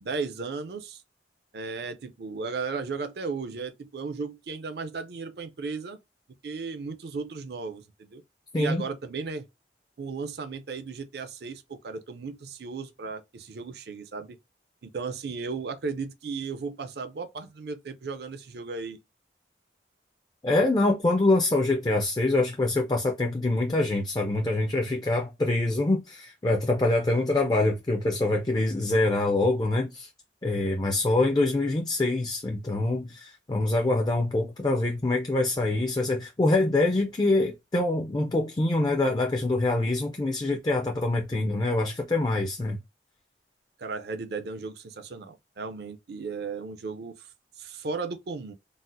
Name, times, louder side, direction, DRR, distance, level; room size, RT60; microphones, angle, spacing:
voice 1, 0.0-1.0 1.5-6.0 6.4-8.2 8.6-9.4 10.0-14.4 14.8-19.0 30.8-31.0 43.8-47.3 47.6-48.5, right 4 dB, 60° right, 0.5 m, -35 dB
voice 2, 8.5-8.8 20.4-30.1 30.4-42.8, left 2 dB, 20° left, 0.4 m, -25 dB
4.0 x 2.0 x 2.5 m
head